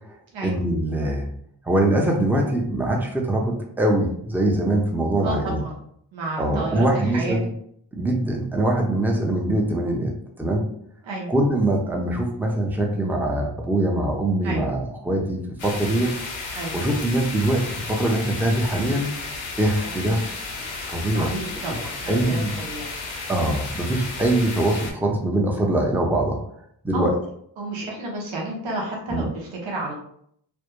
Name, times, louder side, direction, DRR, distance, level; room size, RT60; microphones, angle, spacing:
voice 1, 0.4-1.3 1.6-5.6 6.4-7.5 7.9-10.7 11.3-16.1 16.7-19.1 19.6-20.2 20.9-21.3 22.1-22.5 23.3-26.4 26.8-27.1 29.1-29.3, right 1 dB, 5° right, 0 dB, 0.6 m, -23 dB
voice 2, 5.2-5.8 6.1-7.4 11.0-11.3 14.4-14.7 16.5-16.8 19.8-20.0 21.1-22.9 26.9-27.1 27.6-29.9, right 2 dB, 85° right, -2 dB, 0.7 m, -31 dB
sound 1, 15.6-24.9, left 3 dB, 85° left, 0.7 m, -33 dB
2.1 x 2.0 x 2.9 m, 0.68 s
cardioid pair, 40°, 45 cm